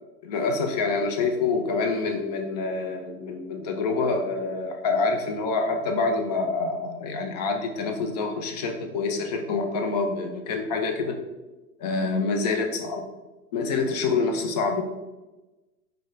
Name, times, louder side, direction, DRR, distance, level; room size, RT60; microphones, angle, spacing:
voice 1, 0.2-11.2 11.8-13.1 13.5-14.8, left 4 dB, 30° left, 4 dB, 0.4 m, -26 dB
4.7 x 2.2 x 3.9 m, 1.1 s
figure-of-eight pair, 95°, 46 cm